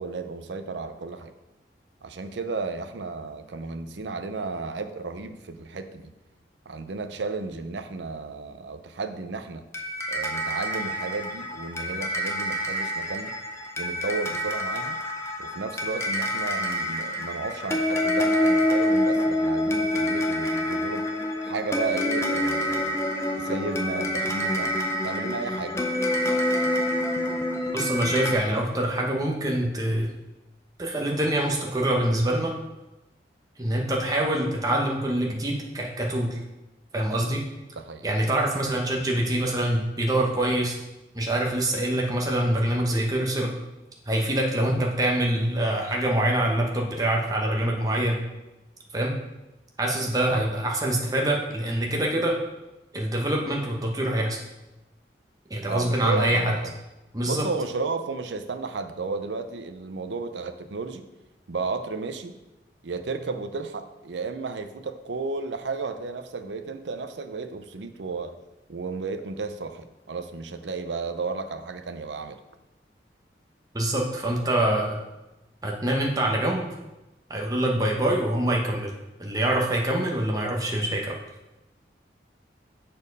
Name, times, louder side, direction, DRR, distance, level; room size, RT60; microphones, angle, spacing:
voice 1, 0.0-1.3 2.0-6.1 6.7-9.7 10.1-13.3 13.8-15.0 15.4-21.1 21.4-23.0 23.4-24.8 25.0-25.8 37.8-38.1 44.7-44.9 50.2-50.5 55.7-56.7 57.3-61.0 61.5-62.4 62.8-68.3 68.7-72.4, right 4 dB, 85° right, 9 dB, 0.6 m, -33 dB
sound 1, 9.7-28.3, left 1 dB, 15° left, 0.5 m, -27 dB
voice 2, 27.7-30.1 30.8-32.6 33.6-36.4 36.9-37.5 38.0-40.8 41.1-43.5 44.1-48.2 48.9-49.1 49.8-52.4 52.9-54.4 55.5-56.5 57.1-57.5 73.7-75.0 75.6-76.7 77.3-78.9 79.2-81.1, right 1 dB, 20° right, -1 dB, 1.0 m, -25 dB
7.1 x 4.4 x 5.3 m, 1.0 s
head